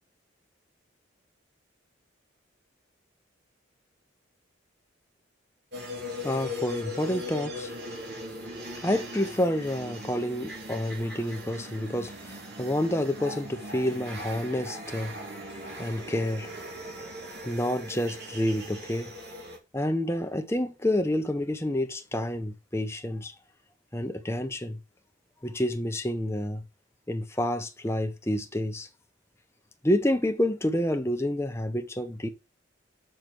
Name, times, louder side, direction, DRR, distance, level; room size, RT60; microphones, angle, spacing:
sound 1, 5.7-19.6, left 1 dB, 55° right, 3.3 m, -39 dB
voice 1, 6.0-7.8 8.7-15.4 15.8-16.6 17.4-19.1 19.7-23.3 23.9-24.8 25.4-26.6 27.1-28.9 29.8-32.3, left 1 dB, 15° left, 1.2 m, -29 dB
7.3 x 6.2 x 6.2 m
head